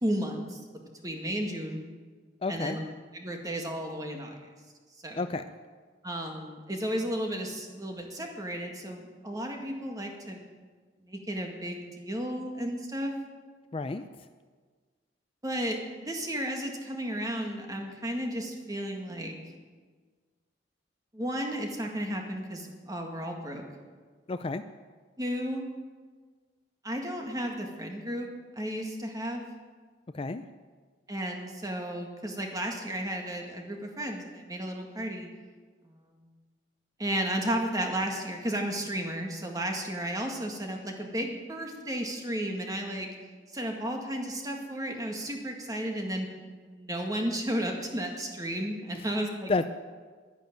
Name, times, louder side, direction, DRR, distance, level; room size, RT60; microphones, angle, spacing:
voice 1, 0.0-1.8 2.5-2.8 3.1-4.4 5.0-5.4 6.0-10.5 11.0-13.1 15.4-19.4 21.1-23.7 25.2-25.6 26.8-28.3 28.6-29.4 31.1-35.3 35.8-36.3 37.0-43.1 43.5-46.3 46.7-49.5, right 1 dB, 20° right, 2 dB, 1.9 m, -33 dB
voice 2, 2.4-2.8 5.1-5.4 13.7-14.1 24.3-24.6 30.1-30.4 49.5-49.7, left 3 dB, 30° left, 10 dB, 0.4 m, -30 dB
11.5 x 10.5 x 9.2 m, 1.5 s
head